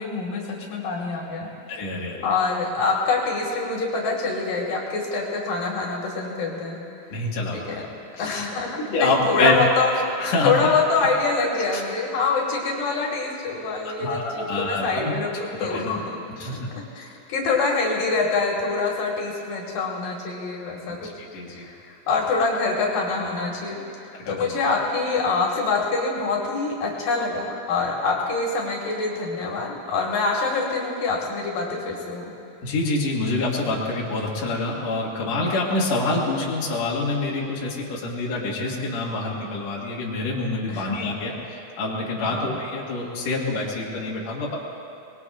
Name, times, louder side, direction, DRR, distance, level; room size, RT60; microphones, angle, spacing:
voice 1, 0.0-1.5 2.2-6.8 7.5-7.9 8.2-9.9 10.4-16.2 16.7-21.0 21.5-32.3 40.7-41.0 42.2-42.5, left 4 dB, 70° left, -2 dB, 3.4 m, -25 dB
voice 2, 1.7-2.2 7.1-7.7 8.2-8.4 8.9-9.5 10.2-10.5 14.0-15.1 15.7-15.9 16.4-16.7 21.2-21.7 24.3-24.5 32.6-44.6, left 2 dB, 50° left, -4 dB, 2.8 m, -26 dB
24.0 x 21.0 x 2.5 m, 2.7 s
omnidirectional pair, 4.1 m